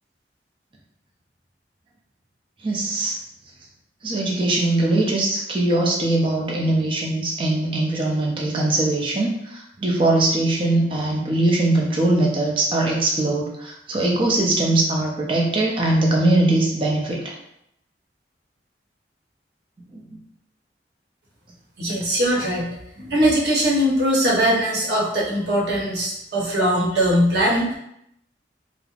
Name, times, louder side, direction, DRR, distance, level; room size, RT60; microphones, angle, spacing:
voice 1, 2.6-3.1 4.0-9.4 9.8-17.2, right 2 dB, 30° right, -2 dB, 0.5 m, -21 dB
voice 2, 21.8-27.8, equal, 70° right, -6 dB, 0.9 m, -21 dB
2.9 x 2.0 x 2.4 m, 0.77 s
head